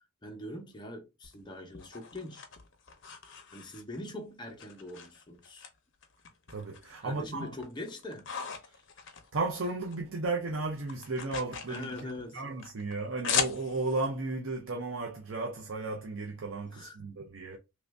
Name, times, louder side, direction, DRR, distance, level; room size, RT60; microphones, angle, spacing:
voice 1, 0.2-2.5 3.5-5.7 7.0-8.3 8.6-8.9 11.7-12.4 16.7-17.1, left 1 dB, 20° left, 0.8 m, -43 dB
sound 1, 1.2-4.1 4.6-5.7 6.0-7.0 7.4-10.0 10.3-14.1, left 7 dB, 55° left, 0.7 m, -38 dB
voice 2, 6.5-7.5 9.3-11.9 12.3-17.6, right 3 dB, 60° right, 0.6 m, -34 dB
3.0 x 2.6 x 3.3 m
head